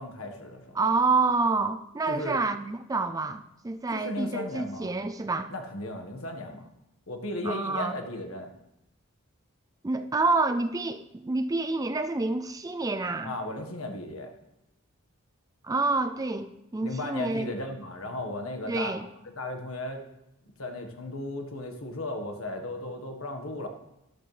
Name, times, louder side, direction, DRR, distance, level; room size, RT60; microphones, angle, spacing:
voice 1, 0.0-0.8 2.1-2.4 3.9-4.9 5.5-6.7 7.1-8.5 13.2-14.3 16.8-18.9 19.2-20.0 20.6-23.7, left 1 dB, 65° left, 5 dB, 1.5 m, -35 dB
voice 2, 0.8-5.5 7.4-8.0 9.8-13.3 15.6-17.5 18.7-19.1, right 3 dB, 15° right, 9 dB, 0.4 m, -28 dB
13.0 x 12.0 x 3.3 m, 0.86 s
head